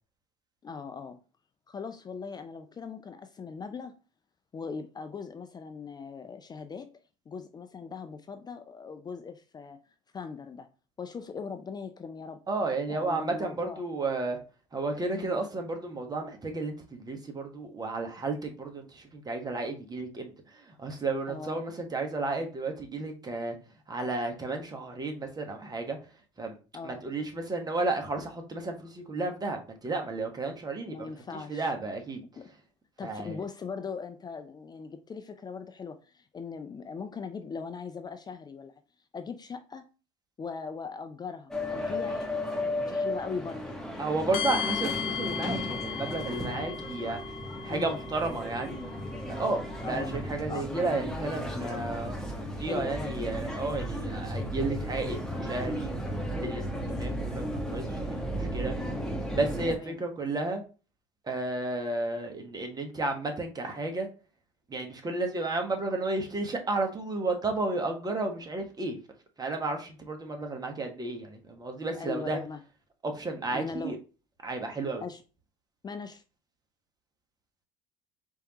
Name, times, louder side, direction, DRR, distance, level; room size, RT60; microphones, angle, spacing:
voice 1, 0.6-1.2 1.7-3.9 4.5-6.9 7.3-9.8 10.1-10.7 11.0-12.4 12.9-13.8 15.1-15.4 21.3-21.6 26.7-27.0 30.9-31.7 32.4-32.5 33.0-38.7 39.1-39.8 40.4-42.3 42.6-43.6 47.7-48.0 49.8-50.1 50.5-50.7 52.6-53.1 59.7-60.0 71.9-72.6 73.5-74.0 75.0-75.2 75.8-76.2, left 5 dB, 25° left, 0.5 m, -39 dB
voice 2, 12.5-14.4 14.7-23.6 23.9-26.0 26.4-26.5 26.8-32.2 33.0-33.4 44.0-47.2 47.6-48.8 49.3-55.9 56.4-58.8 59.3-60.6 61.2-64.1 64.7-69.0 69.4-72.4 73.0-74.0 74.4-75.0, right 3 dB, 25° right, 1.4 m, -32 dB
sound 1, 41.5-59.8, equal, 5° left, 1.3 m, -34 dB
sound 2, 44.3-50.3, left 7 dB, 70° left, 0.8 m, -37 dB
4.6 x 3.4 x 3.0 m
hypercardioid pair, 70°, 15 cm